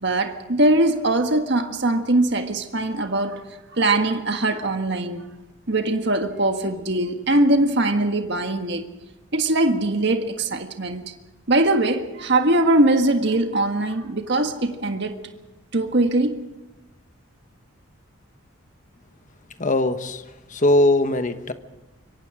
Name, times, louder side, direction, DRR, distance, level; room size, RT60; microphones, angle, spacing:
voice 1, 0.0-3.4 3.7-5.3 5.7-8.8 9.3-11.0 11.5-15.2 15.7-16.4, right 2 dB, 55° right, 1.6 m, -21 dB
voice 2, 19.6-20.2 20.5-21.5, left 1 dB, 40° left, 1.2 m, -20 dB
25.5 x 23.0 x 5.0 m
head